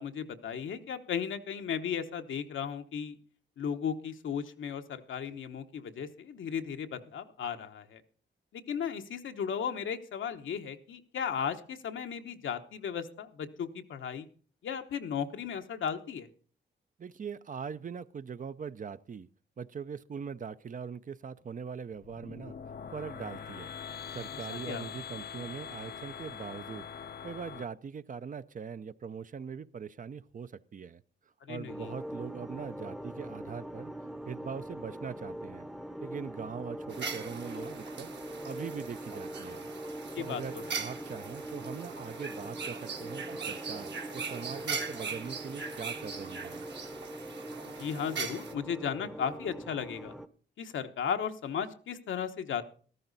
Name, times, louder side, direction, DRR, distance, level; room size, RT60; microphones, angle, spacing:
voice 1, 0.0-3.2 3.6-8.0 8.5-14.3 14.6-16.3 24.5-24.9 31.5-31.9 40.1-40.6 47.8-50.1 50.6-52.6, left 7 dB, 80° left, 7 dB, 1.1 m, -35 dB
voice 2, 17.0-19.3 19.6-22.6 22.9-23.7 24.1-26.9 27.2-31.0 31.5-33.9 34.3-35.7 36.0-39.7 40.2-46.7, right 6 dB, 45° right, 14 dB, 0.6 m, -41 dB
sound 1, 21.9-27.6, left 7 dB, 55° left, 0.6 m, -43 dB
sound 2, 31.7-50.3, equal, ahead, 0.8 m, -43 dB
sound 3, 36.9-48.5, right 5 dB, 60° right, 1.6 m, -40 dB
13.5 x 13.5 x 4.1 m, 0.42 s
cardioid pair, 85°, 20 cm